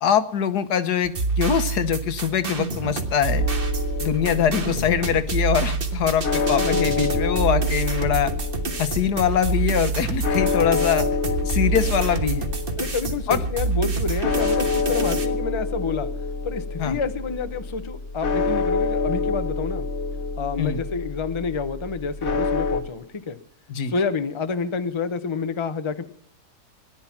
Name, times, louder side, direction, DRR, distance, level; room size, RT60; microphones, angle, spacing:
voice 1, 0.0-3.4 4.0-8.3 8.8-11.1 11.4-12.5 13.3-13.4 16.8-17.0 20.6-20.8 23.7-23.9, left 8 dB, 80° left, 11 dB, 1.6 m, -23 dB
sound 1, 1.0-15.3, right 4 dB, 35° right, 1.5 m, -27 dB
sound 2, 3.4-22.8, left 4 dB, 45° left, 1.4 m, -27 dB
voice 2, 12.8-16.1 16.4-19.9 20.4-23.4 23.8-26.0, left 5 dB, 25° left, 10 dB, 0.7 m, -28 dB
18.0 x 11.0 x 5.8 m, 0.68 s
omnidirectional pair, 1.7 m